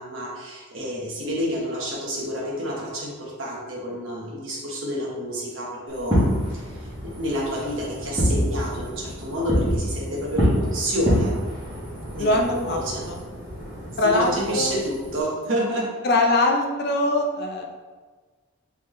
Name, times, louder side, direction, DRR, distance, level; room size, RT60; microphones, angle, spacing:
voice 1, 0.0-11.3 12.1-13.1 14.0-15.9, equal, 70° right, -3 dB, 1.1 m, -29 dB
Fireworks, 5.9-15.2, equal, 20° right, 1.4 m, -27 dB
voice 2, 12.2-12.8 13.1-13.2 14.0-14.7 16.0-17.6, left 2 dB, 50° left, 2 dB, 0.6 m, -22 dB
4.3 x 3.6 x 3.1 m, 1.4 s
head